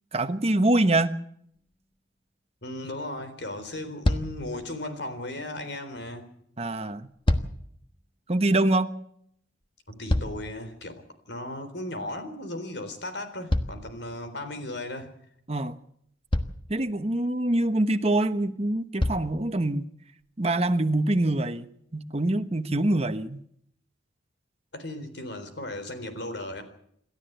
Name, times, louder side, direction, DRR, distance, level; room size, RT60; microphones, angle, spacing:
voice 1, 0.1-1.1 6.6-7.1 8.3-8.9 15.5-15.8 16.7-19.9 20.4-23.4, right 1 dB, 35° right, 1.1 m, -25 dB
sound 1, 1.5-1.7 3.1-3.2 3.6-3.8 4.0-4.5 6.9-7.7 9.6-10.7 13.5-14.5 15.7-15.8 16.3-16.7 18.2-18.3 19.0-19.4 20.2-20.3, left 1 dB, 25° left, 1.3 m, -28 dB
voice 2, 2.6-6.3 9.9-15.1 24.7-26.6, left 1 dB, 65° left, 3.8 m, -36 dB
28.0 x 13.0 x 8.0 m
head